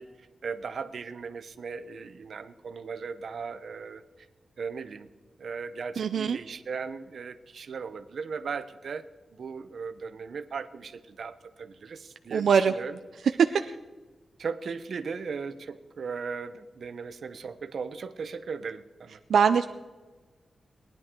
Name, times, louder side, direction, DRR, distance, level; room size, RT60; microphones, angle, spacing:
voice 1, 0.0-4.3 4.6-5.1 5.4-9.0 9.3-13.0 14.4-19.2, right 5 dB, 60° right, 10 dB, 0.7 m, -37 dB
voice 2, 6.0-6.4 12.3-12.7 19.3-19.7, right 6 dB, 90° right, 8 dB, 0.4 m, -22 dB
20.0 x 10.5 x 3.7 m, 1.3 s
wide cardioid pair, 165°, 0 cm